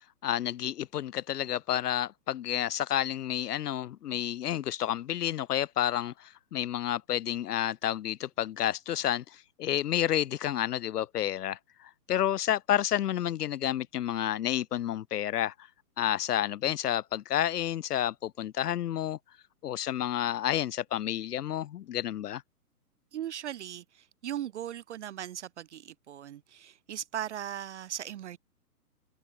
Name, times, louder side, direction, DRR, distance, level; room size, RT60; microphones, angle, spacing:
voice 1, 0.2-15.5 16.0-19.2 19.6-22.4, left 11 dB, 80° left, 0.6 m, -30 dB
voice 2, 23.1-28.4, right 10 dB, 50° right, 0.6 m, -38 dB
hypercardioid pair, 145°, 46 cm